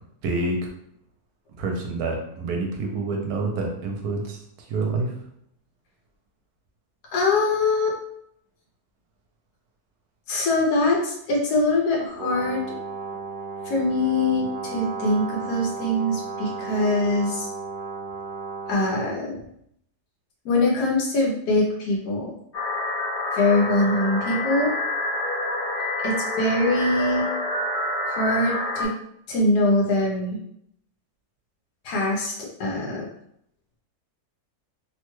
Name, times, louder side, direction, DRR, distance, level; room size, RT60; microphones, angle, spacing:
voice 1, 0.2-0.7 1.6-4.4 4.7-5.1, right 3 dB, 75° right, 1 dB, 1.2 m, -27 dB
voice 2, 7.1-8.0 10.3-12.6 13.6-17.5 18.7-19.4 20.4-22.3 23.3-24.7 26.0-27.3 28.1-28.9 29.3-30.4 31.8-33.1, left 2 dB, 90° left, -2 dB, 1.3 m, -23 dB
Brass instrument, 12.2-19.2, right 4 dB, 60° right, 0.8 m, -34 dB
sound 1, 22.5-28.8, left 2 dB, 40° left, 0.5 m, -27 dB
3.1 x 2.2 x 3.0 m, 0.71 s
omnidirectional pair, 1.7 m